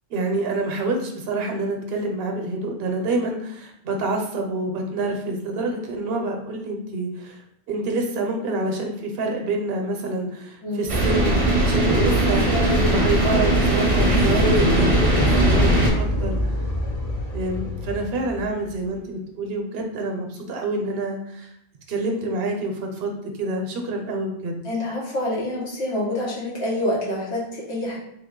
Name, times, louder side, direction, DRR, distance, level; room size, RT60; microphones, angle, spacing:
voice 1, 0.1-7.4 7.7-14.9 15.3-16.3 17.3-21.5 21.9-24.6, right 2 dB, 70° right, 3 dB, 0.8 m, -27 dB
sound 1, 10.9-15.9, right 1 dB, 35° right, 0.6 m, -19 dB
sound 2, 13.6-18.8, left 1 dB, 45° left, 0.6 m, -27 dB
voice 2, 24.6-28.0, left 1 dB, 85° left, -5 dB, 1.3 m, -27 dB
3.2 x 2.1 x 3.6 m, 0.76 s
omnidirectional pair, 1.1 m